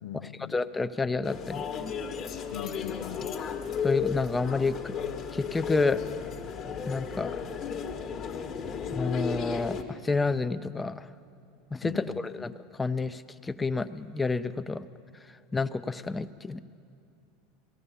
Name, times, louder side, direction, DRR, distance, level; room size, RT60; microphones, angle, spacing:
voice 1, 0.0-0.5 2.5-3.4 11.8-12.3, left 11 dB, 85° left, 15 dB, 0.4 m, -40 dB
voice 2, 0.5-1.7 3.8-5.0 5.3-6.0 6.9-7.3 8.9-11.1 11.7-12.5 12.8-14.9 15.5-16.6, left 3 dB, 15° left, 12 dB, 0.5 m, -29 dB
sound 1, 1.2-9.8, left 6 dB, 45° left, 1.3 m, -34 dB
18.0 x 14.0 x 5.6 m, 2.6 s
hypercardioid pair, 95°, 0 cm